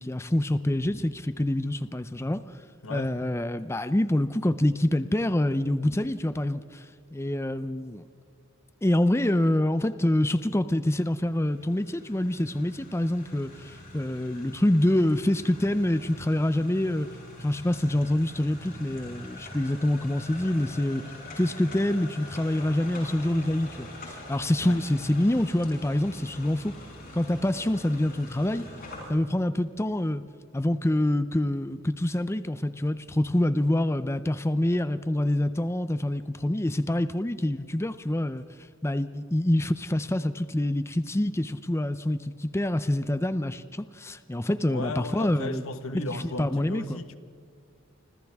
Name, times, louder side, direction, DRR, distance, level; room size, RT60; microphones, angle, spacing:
voice 1, 0.0-2.4 2.9-8.0 8.8-17.1 17.4-21.0 21.4-26.7 27.1-28.7 29.1-30.2 30.5-38.4 38.8-45.6 46.4-47.0, left 1 dB, 15° left, 0.5 m, -26 dB
voice 2, 2.8-3.2 24.6-24.8 44.7-47.2, left 2 dB, 85° left, 1.4 m, -35 dB
sound 1, 11.1-29.1, left 1 dB, 45° left, 6.9 m, -44 dB
29.5 x 26.0 x 3.6 m
head